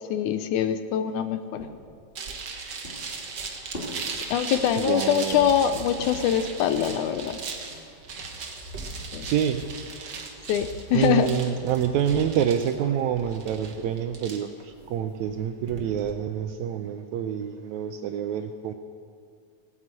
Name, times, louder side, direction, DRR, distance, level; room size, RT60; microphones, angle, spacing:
voice 1, 0.1-1.7 4.3-7.4 9.1-9.3 10.5-11.3, left 9 dB, 75° left, 10 dB, 1.9 m, -24 dB
sound 1, 1.6-2.4 2.8-3.4 3.7-4.9 5.3-6.4, left 1 dB, 20° left, 2.2 m, -41 dB
sound 2, 2.1-16.1, right 4 dB, 60° right, 1.1 m, -38 dB
voice 2, 4.8-5.5 9.2-9.7 9.9-10.3 10.9-18.7, right 9 dB, 80° right, 8 dB, 1.7 m, -27 dB
sound 3, 5.3-7.5 7.7-12.3, equal, 40° left, 4.1 m, -44 dB
17.0 x 9.7 x 7.7 m, 2.2 s
omnidirectional pair, 3.8 m